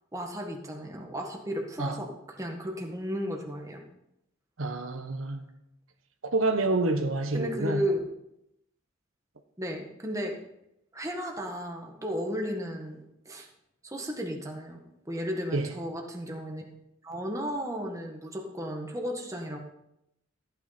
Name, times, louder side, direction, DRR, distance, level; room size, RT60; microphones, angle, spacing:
voice 1, 0.1-2.1 2.3-3.8 7.3-8.0 9.6-10.4 10.9-13.5 13.8-16.7 17.0-19.6, equal, 15° right, 1 dB, 1.7 m, -34 dB
voice 2, 4.6-5.5 6.2-7.9 15.5-15.7, right 2 dB, 85° right, 7 dB, 1.1 m, -28 dB
14.5 x 9.5 x 4.3 m, 0.83 s
head